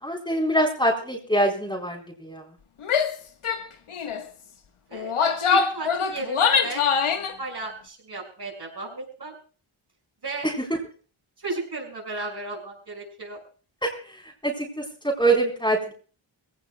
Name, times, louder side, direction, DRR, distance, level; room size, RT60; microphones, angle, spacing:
voice 1, 0.0-2.4 10.4-10.8 13.8-14.2 14.4-15.9, right 1 dB, 10° left, 0 dB, 4.3 m, -24 dB
Female speech woman speaking / Yell, 2.8-3.1 3.4-3.6 3.9-4.2 4.9-7.3, left 6 dB, 80° left, 1.7 m, -23 dB
voice 2, 5.5-6.8 7.4-9.3 10.2-10.5 11.4-13.4, right 3 dB, 50° right, -1 dB, 6.3 m, -34 dB
22.0 x 17.0 x 2.4 m, 0.39 s
cardioid pair, 75°, 49 cm